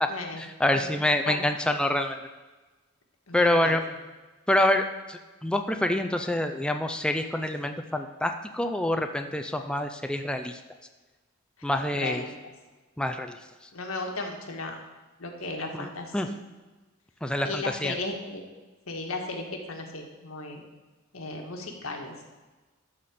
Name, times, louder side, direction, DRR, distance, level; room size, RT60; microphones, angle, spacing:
voice 1, 0.1-0.4 0.7-1.5 3.3-4.0 11.9-12.5 13.7-14.8 15.2-16.4 17.4-18.4 18.9-20.6 21.1-22.1, left 2 dB, 80° left, 2 dB, 1.6 m, -36 dB
voice 2, 0.6-2.2 3.3-3.8 4.5-4.8 5.1-10.6 11.6-12.2 13.0-13.3 15.8-15.9 16.1-16.3 17.2-17.9, left 1 dB, 5° left, 6 dB, 0.4 m, -26 dB
12.5 x 4.3 x 6.5 m, 1.2 s
head